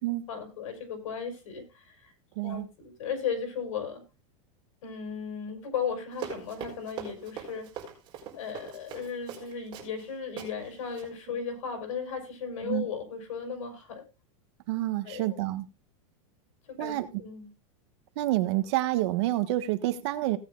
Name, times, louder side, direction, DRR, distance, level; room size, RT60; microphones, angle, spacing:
voice 1, 0.3-2.1 2.4-4.0 4.8-7.7 8.3-14.0 15.0-15.4 16.7-17.5, left 6 dB, 85° left, 6 dB, 4.8 m, -36 dB
voice 2, 2.3-2.7 12.6-12.8 14.7-15.6 16.8-17.2 18.1-20.4, right 16 dB, 55° right, 10 dB, 1.4 m, -28 dB
Run, 6.1-10.1 10.4-10.5 10.9-11.1, right 7 dB, 30° right, 4.4 m, -41 dB
17.5 x 9.2 x 2.4 m, 0.27 s
supercardioid pair, 165°, 16 cm